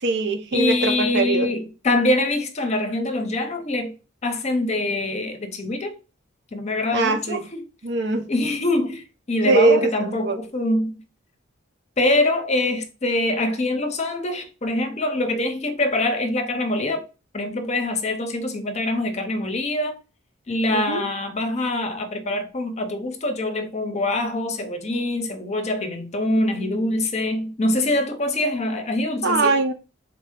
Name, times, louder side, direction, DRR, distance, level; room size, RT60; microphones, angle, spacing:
voice 1, 0.0-1.5 6.9-7.4 7.8-8.3 9.4-10.4 20.7-21.0 29.2-29.7, right 3 dB, 60° right, 0.7 m, -21 dB
voice 2, 0.5-3.9 4.2-6.0 6.5-7.6 8.3-10.9 12.0-17.0 17.3-20.0 20.5-29.6, left 2 dB, 35° left, 0.7 m, -24 dB
3.9 x 2.8 x 3.5 m
head